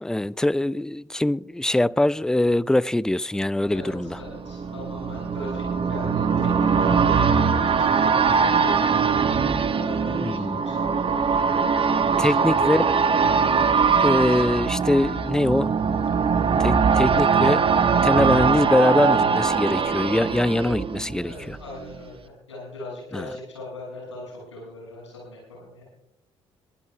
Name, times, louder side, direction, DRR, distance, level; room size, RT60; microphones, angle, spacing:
voice 1, 0.0-4.2 10.2-10.6 12.2-12.9 14.0-15.7 16.6-17.7 18.0-21.6 23.1-23.3, left 1 dB, 5° left, 0.4 m, -23 dB
voice 2, 3.7-8.9 9.7-11.5 11.8-12.8 14.2-14.3 21.2-25.9, left 1 dB, 85° left, 7.0 m, -39 dB
sound 1, 3.8-21.6 21.9-22.0, right 5 dB, 35° right, 1.2 m, -22 dB
22.5 x 15.5 x 2.4 m
figure-of-eight pair, 45°, 15 cm